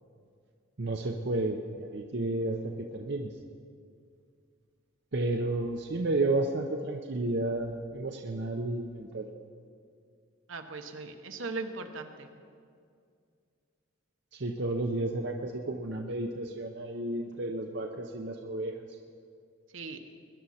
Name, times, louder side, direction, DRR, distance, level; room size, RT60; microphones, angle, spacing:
voice 1, 0.8-3.3 5.1-9.3 14.3-18.9, right 2 dB, 55° right, 2 dB, 0.7 m, -32 dB
voice 2, 10.5-12.3 19.7-20.0, right 3 dB, 75° right, 5 dB, 1.1 m, -38 dB
21.5 x 11.0 x 4.3 m, 2.2 s
head